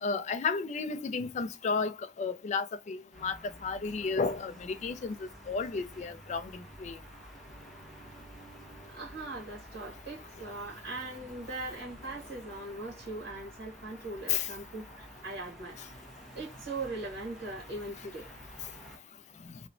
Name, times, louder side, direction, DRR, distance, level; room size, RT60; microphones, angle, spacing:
voice 1, 0.0-7.0 14.3-14.5, left 4 dB, 40° left, 0.3 m, -33 dB
sound 1, 3.1-19.0, equal, ahead, 0.9 m, -51 dB
voice 2, 8.9-16.0 16.3-18.3 19.3-19.4, right 2 dB, 55° right, 1.1 m, -40 dB
2.9 x 2.1 x 2.5 m
head